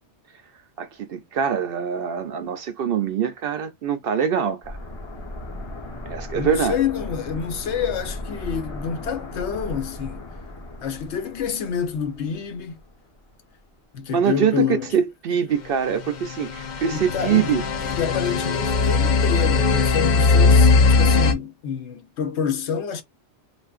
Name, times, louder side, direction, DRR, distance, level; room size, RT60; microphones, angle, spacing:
voice 1, 0.8-4.8 6.1-6.8 14.1-14.7 14.9-17.6, right 7 dB, 65° right, 0.7 m, -24 dB
sound 1, 4.6-13.4 13.6-13.7, left 1 dB, 25° left, 0.9 m, -36 dB
voice 2, 6.3-10.3 10.8-12.8 13.9-14.9 16.9-17.5 17.8-23.0, left 7 dB, 75° left, 1.0 m, -28 dB
sound 2, 15.9-21.3, left 4 dB, 55° left, 0.5 m, -19 dB
3.3 x 2.4 x 2.3 m
omnidirectional pair, 1.2 m